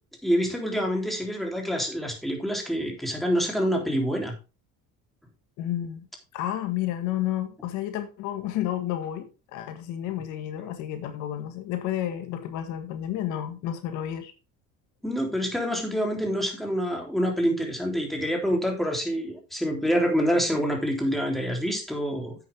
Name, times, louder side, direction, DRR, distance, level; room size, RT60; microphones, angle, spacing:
voice 1, 0.2-4.3 15.0-22.3, equal, ahead, 3.5 m, -26 dB
voice 2, 5.6-6.1 6.3-14.3, left 12 dB, 80° left, 1.7 m, -31 dB
10.0 x 8.5 x 3.6 m
cardioid pair, 120°, 30 cm